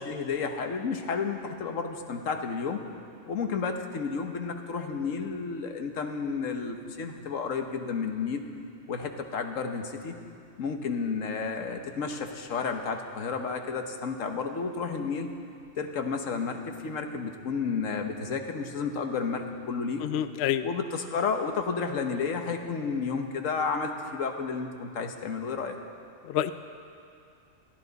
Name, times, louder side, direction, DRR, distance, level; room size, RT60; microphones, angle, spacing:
voice 1, 0.1-2.8 3.3-8.4 8.9-10.1 10.6-15.3 15.8-20.1 20.6-25.8, left 5 dB, 90° left, 5 dB, 1.5 m, -31 dB
voice 2, 20.0-20.6 26.3-26.5, left 11 dB, 65° left, 11 dB, 0.7 m, -27 dB
21.5 x 15.0 x 4.0 m, 2.5 s
omnidirectional pair, 1.3 m